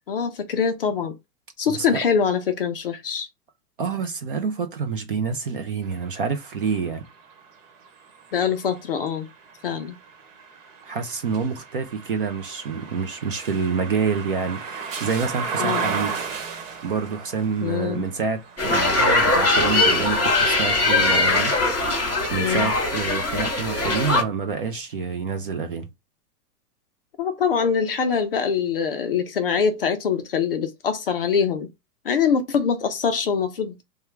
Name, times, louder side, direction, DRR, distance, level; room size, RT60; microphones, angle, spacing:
voice 1, 0.1-1.1 1.6-3.3 8.3-9.3 9.6-10.0 15.6-15.9 17.6-18.1 22.4-22.7 27.2-31.7 32.0-33.8, left 6 dB, 40° left, 0.4 m, -24 dB
voice 2, 1.7-2.0 3.8-7.0 10.8-16.1 16.8-21.5 22.3-25.9, right 5 dB, 40° right, 0.4 m, -27 dB
sound 1, 5.8-21.8 22.3-23.6, right 5 dB, 55° right, 1.1 m, -36 dB
sound 2, 18.6-24.2, left 2 dB, 5° right, 0.8 m, -21 dB
3.5 x 2.2 x 4.4 m
supercardioid pair, 170°, 46 cm